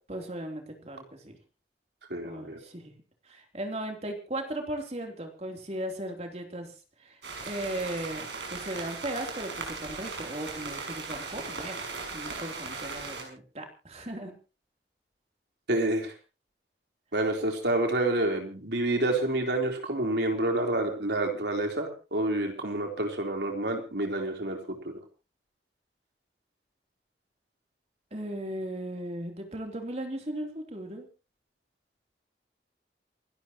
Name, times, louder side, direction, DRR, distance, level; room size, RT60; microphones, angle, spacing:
voice 1, 0.1-1.4 2.2-2.9 3.3-6.7 7.0-11.8 12.1-14.3 28.1-31.1, right 1 dB, 35° right, 3 dB, 3.5 m, -37 dB
voice 2, 2.1-2.6 15.7-16.1 17.1-24.9, right 1 dB, 75° right, 3 dB, 3.9 m, -28 dB
sound 1, 7.2-13.2, right 4 dB, 90° right, 6.6 m, -38 dB
28.5 x 12.0 x 3.1 m, 0.34 s
head